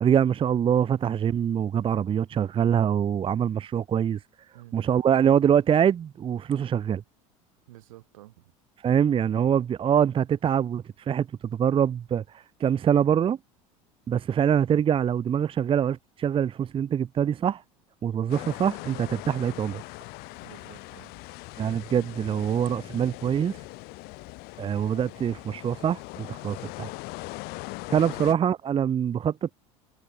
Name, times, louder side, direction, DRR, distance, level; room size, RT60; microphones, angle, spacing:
voice 1, 0.0-4.2 4.7-7.0 8.8-13.4 14.1-17.6 18.0-19.8 21.6-23.6 24.6-26.9 27.9-29.5, right 8 dB, 30° right, 0.8 m, -24 dB
voice 2, 7.7-8.5 20.4-21.2 28.0-28.1, right 17 dB, 85° right, 6.8 m, -50 dB
sound 1, 18.3-28.3, left 25 dB, 65° left, 5.8 m, -41 dB
hypercardioid pair, 90°, 17 cm